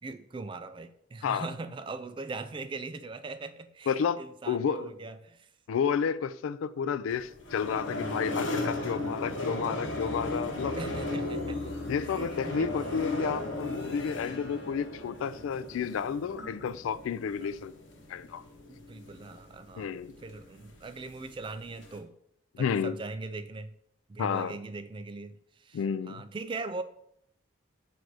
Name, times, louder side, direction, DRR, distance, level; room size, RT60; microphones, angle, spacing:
voice 1, 0.0-5.5 10.7-11.6 12.1-12.7 17.4-17.5 18.7-19.9 20.2-22.1 22.6-23.7 24.1-26.8, right 3 dB, 25° right, 0.3 m, -40 dB
voice 2, 3.9-4.9 5.7-10.8 11.9-17.7 18.1-18.4 19.8-20.1 22.5-23.0 24.2-24.6 25.7-26.2, left 7 dB, 85° left, 0.3 m, -31 dB
sound 1, 7.1-22.0, left 2 dB, 65° left, 1.0 m, -36 dB
7.7 x 2.6 x 4.8 m
head